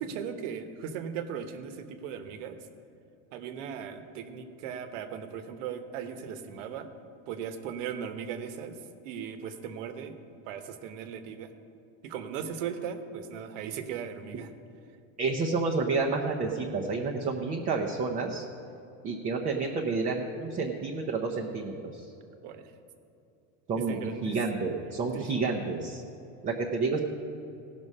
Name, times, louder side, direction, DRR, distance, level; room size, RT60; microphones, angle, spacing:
voice 1, 0.0-2.6 3.3-6.9 7.3-8.8 9.0-10.1 10.5-11.5 12.0-14.5 22.4-22.7 23.9-24.4 25.1-25.4, right 7 dB, 70° right, 9 dB, 1.1 m, -38 dB
voice 2, 15.2-18.5 19.0-22.1 23.7-26.0 26.4-27.0, right 4 dB, 20° right, 0 dB, 0.5 m, -30 dB
17.5 x 6.1 x 5.4 m, 2.8 s
cardioid pair, 170°, 39 cm